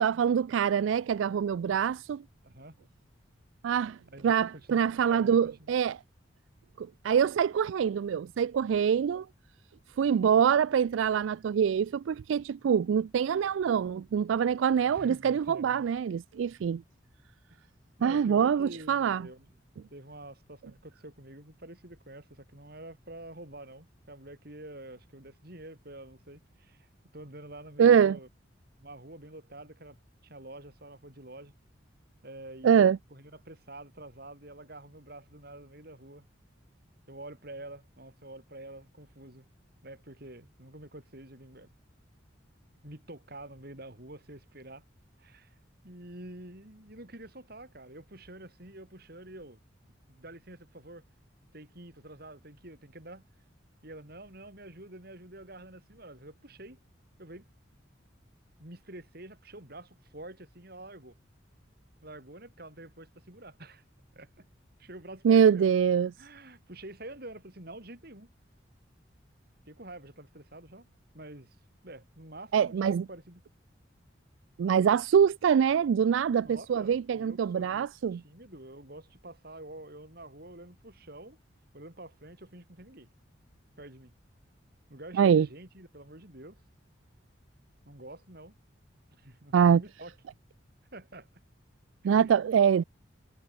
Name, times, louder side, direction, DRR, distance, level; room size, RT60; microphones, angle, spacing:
voice 1, 0.0-2.2 3.6-4.0 4.2-6.0 6.8-9.3 10.0-16.8 18.0-19.2 27.8-28.2 32.6-33.0 65.2-66.1 72.5-73.0 74.6-78.2 85.1-85.5 89.5-89.8 92.0-92.8, right 7 dB, 80° right, 0.3 m, -24 dB
voice 2, 2.4-2.8 4.1-5.7 14.9-15.9 17.5-17.6 18.0-19.5 19.9-26.9 27.1-28.3 28.8-30.0 30.2-31.5 32.2-36.3 37.1-39.5 39.8-41.7 42.8-44.8 45.2-45.6 45.8-49.6 50.1-51.0 51.5-53.2 53.8-56.8 57.2-57.5 58.6-61.2 62.0-63.8 64.1-64.5 64.8-65.7 66.2-68.3 69.7-70.9 71.1-71.6 71.8-73.4 76.4-81.4 81.7-83.1 83.8-84.1 84.9-86.6 87.9-88.6 89.2-90.1 90.9-91.3 92.0-92.3, right 1 dB, 55° right, 5.9 m, -47 dB
head